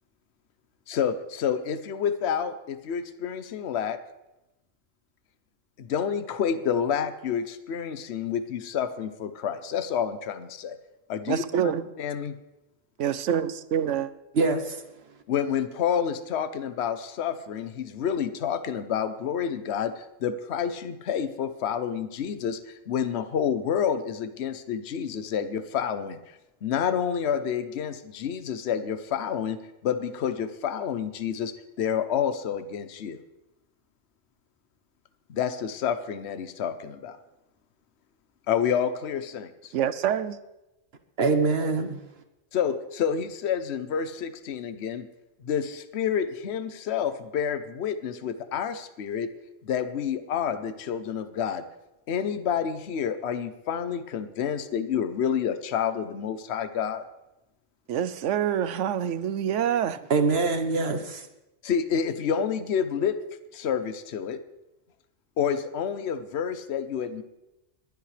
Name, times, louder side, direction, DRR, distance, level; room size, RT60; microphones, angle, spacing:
voice 1, 0.9-4.0 5.8-10.8 11.1-11.7 12.0-12.4 15.3-26.2 26.6-29.6 29.8-33.2 35.3-37.2 38.5-39.7 42.5-45.1 45.4-49.3 49.6-51.6 52.1-57.0 61.6-63.2 63.5-64.4 65.4-67.2, left 8 dB, 60° left, 1.0 m, -29 dB
voice 2, 11.3-11.8 13.0-14.1 39.7-40.4 57.9-60.0, right 9 dB, 75° right, 1.0 m, -26 dB
voice 3, 14.4-14.8 41.2-42.0 60.1-61.3, right 4 dB, 55° right, 1.3 m, -24 dB
21.5 x 11.5 x 3.3 m
omnidirectional pair, 1.3 m